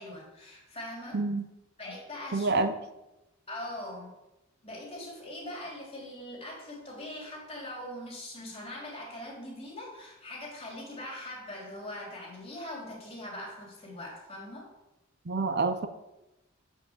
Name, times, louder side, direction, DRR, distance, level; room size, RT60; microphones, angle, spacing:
voice 1, 0.0-1.2 1.8-2.6 3.5-4.1 4.6-14.7, left 1 dB, 30° left, -2 dB, 3.2 m, -41 dB
voice 2, 1.1-1.4 2.3-2.7 15.3-15.9, right 3 dB, 55° right, 9 dB, 0.6 m, -27 dB
8.0 x 5.9 x 7.1 m, 0.96 s
head